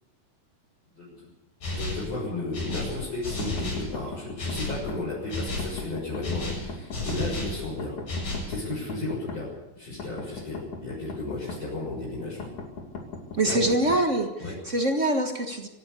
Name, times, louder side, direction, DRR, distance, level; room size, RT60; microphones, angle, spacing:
voice 1, 1.0-1.3 1.7-8.0 8.5-12.5 13.4-13.7 14.4-14.5, left 2 dB, 45° left, -7 dB, 7.8 m, -34 dB
sound 1, 1.6-2.1 2.5-3.9 4.4-4.8 5.3-5.8 6.2-7.6 8.1-8.5, left 2 dB, 85° left, 10.0 m, -32 dB
sound 2, 3.4-5.0 5.6-7.2 7.8-9.4 10.0-11.6 12.4-14.0, left 3 dB, 60° left, 4.1 m, -38 dB
voice 2, 13.3-15.7, right 1 dB, 55° right, 5 dB, 0.8 m, -24 dB
26.5 x 12.5 x 8.4 m, 0.99 s
omnidirectional pair, 4.0 m